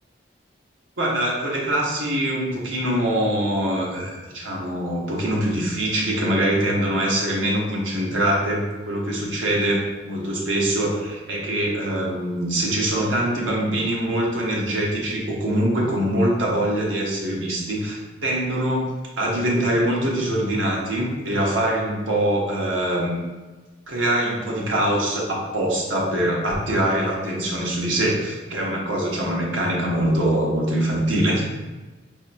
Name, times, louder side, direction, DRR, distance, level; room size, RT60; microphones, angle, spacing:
voice 1, 1.0-23.2 23.9-31.4, right 1 dB, 80° right, -2 dB, 1.0 m, -23 dB
5.4 x 2.8 x 2.5 m, 1.2 s
head